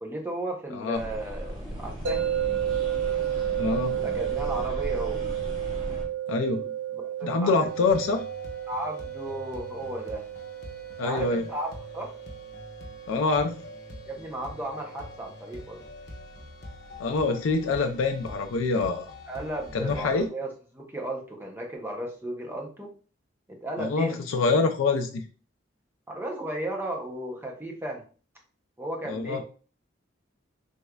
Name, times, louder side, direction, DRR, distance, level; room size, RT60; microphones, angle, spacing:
voice 1, 0.0-2.3 4.0-5.2 6.9-7.7 8.7-10.2 11.0-12.1 14.1-15.8 19.3-22.9 23.5-24.2 26.1-28.0 28.8-29.4, right 1 dB, 10° right, 0 dB, 0.6 m, -35 dB
sound 1, 0.9-6.0, equal, 35° right, 1.4 m, -36 dB
sound 2, 2.1-15.1, right 10 dB, 70° right, 0.5 m, -33 dB
voice 2, 3.6-4.0 6.3-6.7 7.2-8.2 11.0-11.4 13.1-13.6 17.0-19.1 19.7-20.3 23.8-25.2 29.1-29.4, left 4 dB, 80° left, 5 dB, 0.4 m, -25 dB
sound 3, 7.7-20.3, left 2 dB, 55° left, 0.7 m, -45 dB
3.5 x 3.2 x 2.3 m, 0.38 s
head